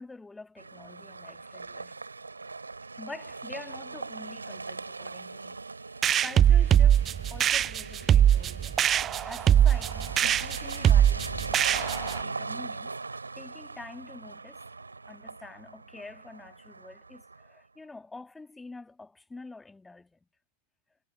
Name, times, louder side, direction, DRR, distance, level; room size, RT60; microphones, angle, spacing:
voice 1, 0.0-2.0 3.0-7.0 7.3-8.9 9.3-13.0 13.4-14.6 15.0-20.2, left 3 dB, 10° left, 2.1 m, -47 dB
sound 1, 0.6-17.5, right 3 dB, 80° right, 2.5 m, -40 dB
sound 2, 6.0-12.2, right 10 dB, 25° right, 0.3 m, -22 dB
figure-of-eight pair, 90°, 0 cm